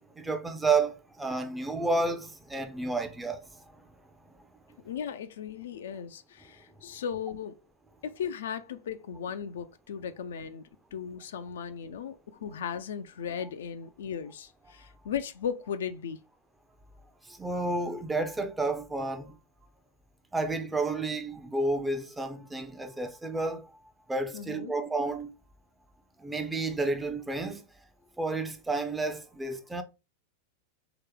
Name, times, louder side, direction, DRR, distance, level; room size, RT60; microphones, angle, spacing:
voice 1, 0.1-3.9 17.2-19.4 20.3-23.7 24.1-25.3 26.2-27.6 28.2-29.8, right 3 dB, 10° right, 0.5 m, -31 dB
voice 2, 4.8-7.6 8.0-16.2 24.3-24.7, left 7 dB, 60° left, 0.4 m, -37 dB
3.2 x 2.9 x 3.4 m
figure-of-eight pair, 90°, 0 cm